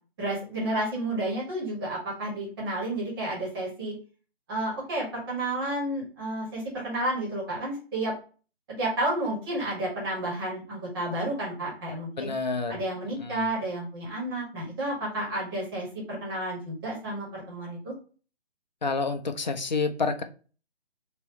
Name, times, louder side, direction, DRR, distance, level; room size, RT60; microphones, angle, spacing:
voice 1, 0.2-3.9 4.5-8.1 8.7-12.3 12.7-17.9, right 1 dB, 20° right, -4 dB, 1.8 m, -31 dB
voice 2, 12.2-12.8 13.2-13.5 18.8-20.2, left 4 dB, 45° left, 7 dB, 0.6 m, -29 dB
4.5 x 3.0 x 2.9 m, 0.37 s
figure-of-eight pair, 150°, 32 cm